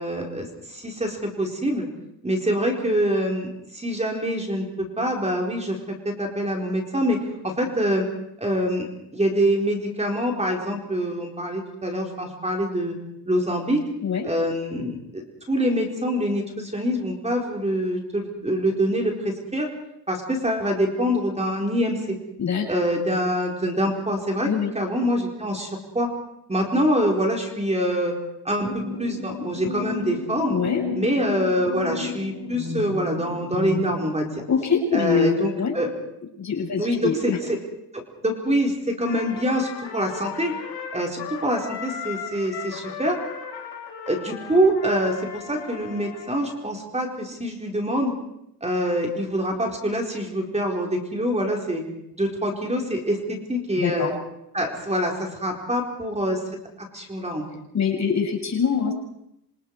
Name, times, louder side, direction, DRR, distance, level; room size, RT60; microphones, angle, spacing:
voice 1, 0.0-1.9 2.2-8.1 8.4-12.9 13.3-13.8 14.2-15.2 15.5-19.7 20.1-22.2 22.7-24.5 24.7-26.1 26.5-28.1 28.4-30.6 30.9-34.4 34.9-35.9 36.8-37.3 37.9-40.5 40.9-43.2 44.1-48.1 48.6-51.8 52.1-54.1 54.5-56.4 56.9-57.4, equal, 15° right, 1 dB, 4.3 m, -25 dB
sound 1, 28.6-34.2, left 4 dB, 50° right, 5.3 m, -32 dB
voice 2, 30.5-30.8 34.5-35.7 36.4-37.4 53.8-54.1 57.7-58.9, left 6 dB, 45° left, 1 dB, 6.6 m, -23 dB
Trumpet, 39.0-46.6, left 7 dB, 90° left, 7.0 m, -37 dB
27.0 x 26.5 x 4.7 m, 0.81 s
cardioid pair, 100°, 38 cm